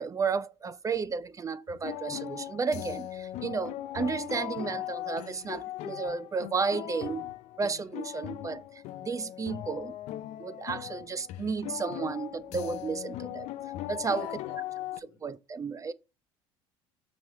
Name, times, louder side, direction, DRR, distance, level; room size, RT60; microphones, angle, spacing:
voice 1, 0.0-7.3 7.6-10.0 10.4-13.5 13.9-14.3 15.2-15.9, right 5 dB, 25° right, 0.5 m, -33 dB
sound 1, 1.7-15.0, left 14 dB, 60° left, 0.5 m, -39 dB
voice 2, 14.0-15.2, left 7 dB, 85° left, 1.3 m, -48 dB
6.2 x 3.0 x 5.5 m
hypercardioid pair, 70°, 13 cm